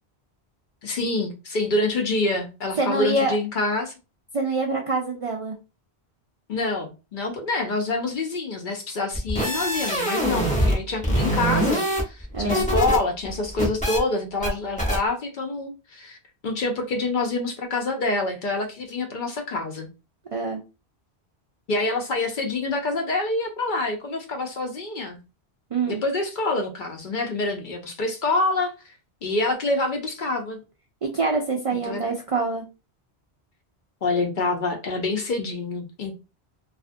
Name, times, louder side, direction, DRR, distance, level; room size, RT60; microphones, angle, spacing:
voice 1, 0.8-3.9 6.5-16.2 16.4-19.9 21.7-25.2 25.9-28.9 29.2-30.6 31.7-32.1 34.0-36.1, left 2 dB, 60° left, 0.6 m, -26 dB
voice 2, 2.8-3.4 4.3-5.6 12.3-12.7 20.3-20.6 25.7-26.0 31.0-32.6, right 3 dB, 60° right, 0.3 m, -25 dB
sound 1, 9.1-10.8 11.0-13.0 13.3-14.0 14.4-14.5 14.8-15.0, right 1 dB, 10° left, 0.7 m, -23 dB
2.4 x 2.4 x 2.5 m
omnidirectional pair, 1.1 m